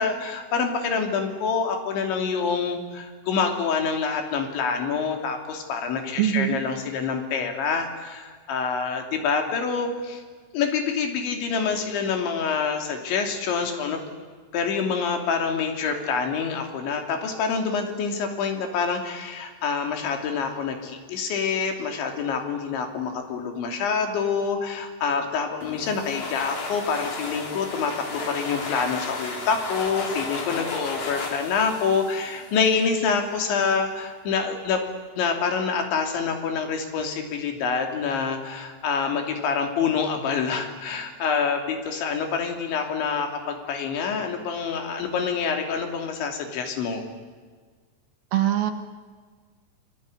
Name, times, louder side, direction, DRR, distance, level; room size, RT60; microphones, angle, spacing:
voice 1, 0.0-10.2 10.5-14.0 14.5-34.8 35.2-47.1, left 5 dB, 80° left, 5 dB, 5.3 m, -26 dB
voice 2, 6.2-6.6 48.3-48.7, right 12 dB, 65° right, 8 dB, 2.7 m, -22 dB
sound 1, 25.6-33.1, left 3 dB, 45° left, 4.5 m, -34 dB
29.0 x 20.5 x 9.8 m, 1.5 s
omnidirectional pair, 5.3 m